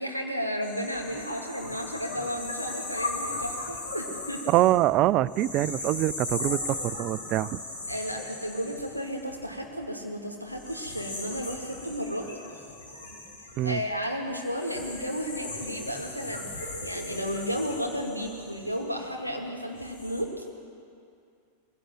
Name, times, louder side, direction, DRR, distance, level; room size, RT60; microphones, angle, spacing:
voice 1, 0.0-4.4 7.9-12.3 13.6-20.5, equal, 90° left, 1 dB, 2.4 m, -33 dB
sound 1, 0.6-9.8 10.5-19.2 19.7-20.2, left 2 dB, 70° left, 3.6 m, -38 dB
voice 2, 4.5-7.6 13.6-13.8, right 15 dB, 40° right, 19 dB, 0.4 m, -24 dB
21.0 x 16.5 x 7.7 m, 2.4 s
figure-of-eight pair, 90°, 0 cm